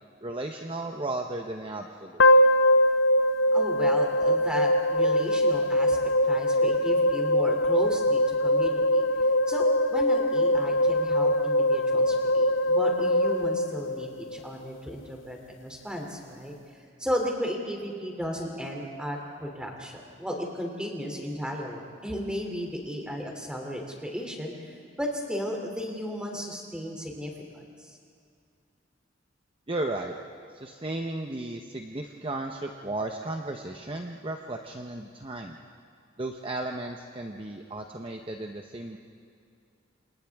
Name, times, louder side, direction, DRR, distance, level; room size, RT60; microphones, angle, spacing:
voice 1, 0.2-2.2 29.7-30.1 30.5-35.6 36.2-39.0, right 2 dB, 25° right, 3 dB, 0.9 m, -34 dB
sound 1, 2.2-14.4, left 1 dB, 70° left, 0.8 m, -23 dB
voice 2, 3.5-6.0 6.2-9.0 9.5-9.6 9.9-16.5 17.0-28.0, equal, 5° right, 0 dB, 2.9 m, -34 dB
28.5 x 27.5 x 3.6 m, 2.4 s
head